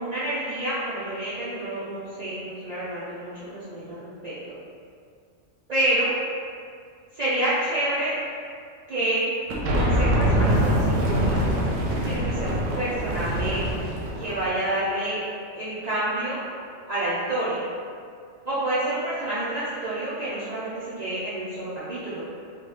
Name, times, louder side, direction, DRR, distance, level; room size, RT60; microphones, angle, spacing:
voice 1, 0.0-4.6 5.7-6.1 7.2-8.2 8.9-9.3 9.7-11.4 12.0-13.6 14.2-15.3 15.5-16.4 16.9-17.7 18.4-22.2, right 1 dB, 60° right, -11 dB, 0.4 m, -28 dB
sound 1, 9.5-14.5, equal, 85° right, 1.0 m, -24 dB
2.8 x 2.2 x 3.1 m, 2.3 s
omnidirectional pair, 1.3 m